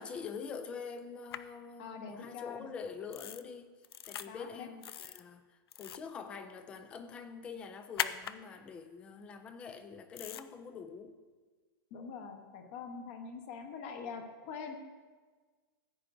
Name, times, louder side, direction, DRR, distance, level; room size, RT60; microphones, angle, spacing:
voice 1, 0.0-3.7 4.1-11.2, left 5 dB, 10° left, 10 dB, 0.3 m, -45 dB
sound 1, 1.3-1.4 3.1-3.4 3.8-4.3 4.8-5.2 5.7-6.1 8.0-8.4 10.2-10.4, left 9 dB, 75° left, 0.5 m, -38 dB
voice 2, 1.8-2.7 4.2-4.7 11.9-14.8, left 5 dB, 30° left, 5 dB, 1.0 m, -44 dB
15.5 x 9.0 x 2.6 m, 1.4 s
supercardioid pair, 175°, 13 cm